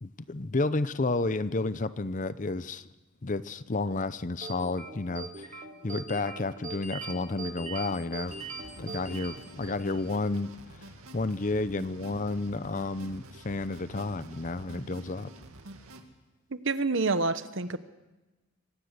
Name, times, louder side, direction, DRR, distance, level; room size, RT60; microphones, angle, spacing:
voice 1, 0.0-2.8 3.2-8.3 8.8-10.5 11.1-15.3, left 3 dB, 35° left, 15 dB, 0.7 m, -31 dB
sound 1, 4.4-10.1, right 3 dB, 35° right, 1.8 m, -41 dB
sound 2, 8.3-16.0, right 1 dB, 85° right, 2.3 m, -48 dB
voice 2, 16.5-17.8, right 3 dB, 60° right, 12 dB, 1.1 m, -28 dB
25.0 x 18.0 x 6.7 m, 1.1 s
head